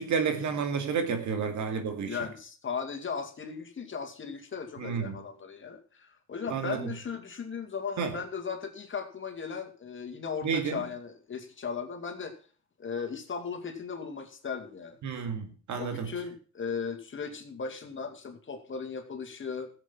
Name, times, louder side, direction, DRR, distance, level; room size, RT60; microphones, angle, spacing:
voice 1, 0.0-2.2 4.8-5.2 6.5-6.9 8.0-8.1 10.4-10.8 15.0-16.1, right 6 dB, 70° right, 2.4 m, -31 dB
voice 2, 2.1-12.4 12.8-15.0 15.8-19.7, left 5 dB, 40° left, 2.3 m, -37 dB
14.0 x 7.9 x 5.6 m
cardioid pair, 90°, 30 cm